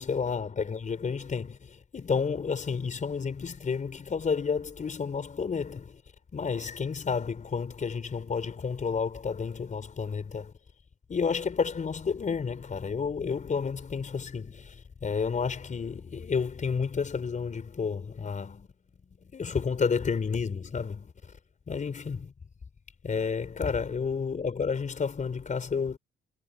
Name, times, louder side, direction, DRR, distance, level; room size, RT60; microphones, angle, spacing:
voice 1, 0.0-1.6 1.9-5.8 6.3-10.5 11.1-14.5 15.0-18.7 19.3-21.0 21.7-22.3 23.0-26.0, left 5 dB, 40° left, 4.4 m, -30 dB
cardioid pair, 90°, 20 cm